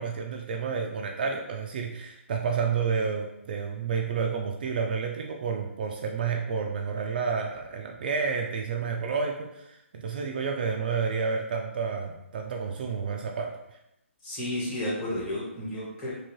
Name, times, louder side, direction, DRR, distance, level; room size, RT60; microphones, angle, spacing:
voice 1, 0.0-13.5, right 5 dB, 45° right, 2 dB, 0.4 m, -30 dB
voice 2, 14.2-16.1, left 1 dB, 20° left, -8 dB, 1.2 m, -32 dB
2.9 x 2.7 x 3.0 m, 0.85 s
hypercardioid pair, 160°, 7 cm